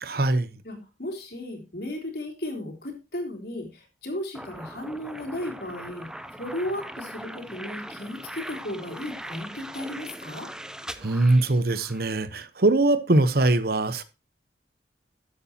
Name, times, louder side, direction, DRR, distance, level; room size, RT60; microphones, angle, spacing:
voice 1, 0.0-0.5 11.0-14.0, right 2 dB, 60° right, 1.0 m, -22 dB
voice 2, 0.6-10.5, left 1 dB, 60° left, 3.5 m, -35 dB
sound 1, 4.3-12.1, right 1 dB, 5° right, 0.6 m, -40 dB
13.0 x 8.3 x 2.9 m
head